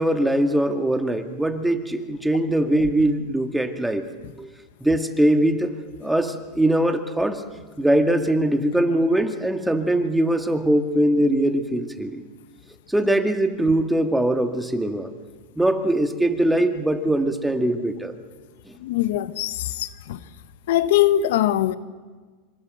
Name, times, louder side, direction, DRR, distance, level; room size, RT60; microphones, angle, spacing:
voice 1, 0.0-4.1 4.4-4.5 4.8-5.7 6.0-7.4 7.8-12.2 12.9-15.1 15.6-18.1, right 1 dB, 5° right, 2.1 m, -21 dB
voice 2, 18.8-20.2 20.7-21.8, left 13 dB, 75° left, 1.3 m, -21 dB
26.0 x 26.0 x 8.0 m
supercardioid pair, 135°, 0 cm